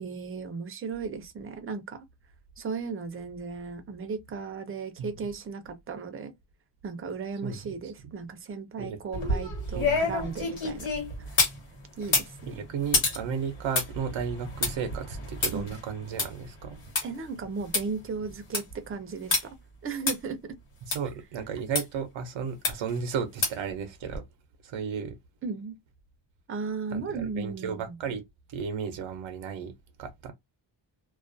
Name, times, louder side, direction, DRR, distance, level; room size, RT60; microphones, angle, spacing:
voice 1, 0.0-2.0 2.6-6.3 6.8-10.9 11.2-11.3 12.0-12.6 15.5-15.7 17.0-19.6 19.8-20.4 25.4-25.8 26.5-28.0, right 5 dB, 30° right, 0.4 m, -36 dB
sound 1, 9.1-11.6 12.0-17.0 17.4-17.5 17.7-17.8 18.3-18.7 19.3-19.4 20.1-20.2 20.9-21.0 21.7-21.8 22.6-23.0 23.4-23.7 24.1-24.2, left 3 dB, 90° left, 1.4 m, -28 dB
voice 2, 9.8-10.1 12.5-16.8 20.9-24.2 24.6-25.2 26.9-28.2 28.5-29.7 30.0-30.3, right 6 dB, 90° right, 0.6 m, -34 dB
2.3 x 2.2 x 2.5 m
wide cardioid pair, 160°, 46 cm